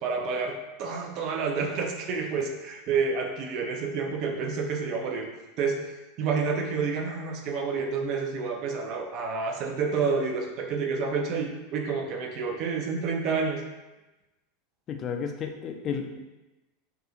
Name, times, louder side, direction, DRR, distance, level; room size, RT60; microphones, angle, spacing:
voice 1, 0.0-5.3 5.6-13.6, right 5 dB, 50° right, 3 dB, 0.4 m, -29 dB
voice 2, 14.9-16.2, left 6 dB, 40° left, 4 dB, 0.3 m, -32 dB
2.4 x 2.3 x 2.8 m, 1.1 s
hypercardioid pair, 90°, 0 cm